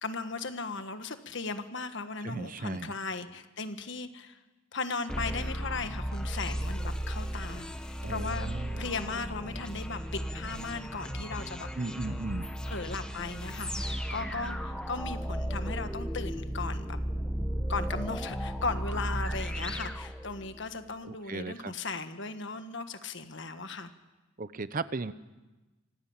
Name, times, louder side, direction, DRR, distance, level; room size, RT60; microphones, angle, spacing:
voice 1, 0.0-4.4 4.7-7.6 8.1-8.5 8.8-11.7 12.7-17.0 17.7-23.9, left 4 dB, 60° left, 9 dB, 1.5 m, -37 dB
voice 2, 2.2-2.9 8.0-8.9 11.8-12.5 21.0-21.7 24.4-25.1, right 3 dB, 40° right, 14 dB, 0.7 m, -36 dB
sound 1, 5.1-20.7, equal, 5° left, 1.4 m, -35 dB
25.5 x 17.0 x 8.9 m, 1.1 s
head